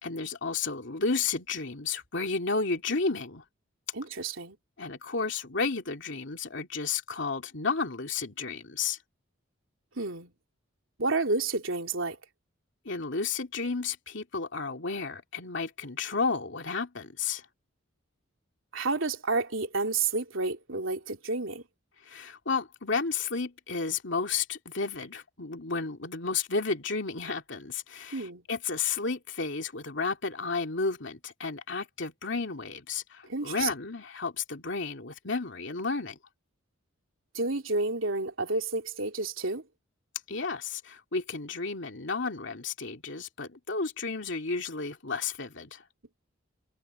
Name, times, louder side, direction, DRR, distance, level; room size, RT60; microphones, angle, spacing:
voice 1, 0.0-3.4 4.8-9.0 12.8-17.4 22.0-36.2 40.3-45.8, left 4 dB, 65° left, 2.9 m, -32 dB
voice 2, 3.9-4.6 9.9-10.3 11.0-12.2 18.7-21.6 28.1-28.4 33.3-33.7 37.3-39.6, right 3 dB, 80° right, 3.1 m, -30 dB
head